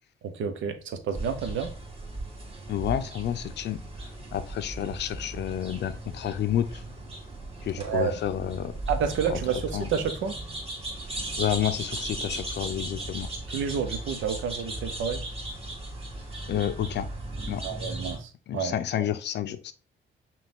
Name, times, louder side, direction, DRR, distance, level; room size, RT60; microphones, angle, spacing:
voice 1, 0.2-1.7 7.8-8.2 8.9-10.3 13.5-15.2 17.6-18.8, right 6 dB, 75° right, 0.7 m, -30 dB
sound 1, 1.1-18.2, right 2 dB, 30° right, 1.7 m, -37 dB
voice 2, 2.7-3.8 4.3-6.8 7.6-8.7 9.3-9.4 9.7-9.9 11.4-13.3 16.5-17.1 17.5-17.6 18.5-19.7, left 10 dB, 60° left, 0.5 m, -30 dB
5.8 x 2.4 x 3.6 m
cardioid pair, 90°, 20 cm